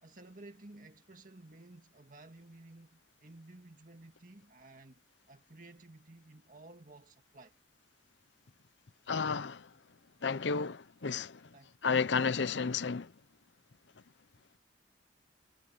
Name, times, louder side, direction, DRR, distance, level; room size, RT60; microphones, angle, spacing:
voice 1, 0.0-5.0 5.3-7.6 11.5-11.8, right 2 dB, 45° right, 2.0 m, -54 dB
voice 2, 9.1-9.7 10.2-11.5 11.8-13.1, left 5 dB, 75° left, 0.7 m, -32 dB
head